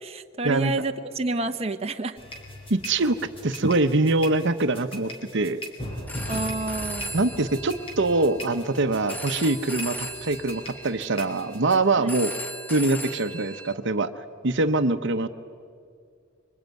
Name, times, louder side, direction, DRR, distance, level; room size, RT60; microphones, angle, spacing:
voice 1, 0.0-2.2 6.3-7.1 12.0-12.1, right 2 dB, 30° right, 5 dB, 0.9 m, -29 dB
sound 1, 2.2-11.8, equal, 30° left, 4.0 m, -39 dB
voice 2, 2.7-3.2 3.4-5.6 7.1-12.3 12.7-14.1 14.4-15.3, right 2 dB, 65° right, 9 dB, 0.9 m, -23 dB
Telephone, 5.9-13.7, right 1 dB, 10° left, 1.4 m, -38 dB
26.5 x 23.5 x 9.3 m, 2.2 s
head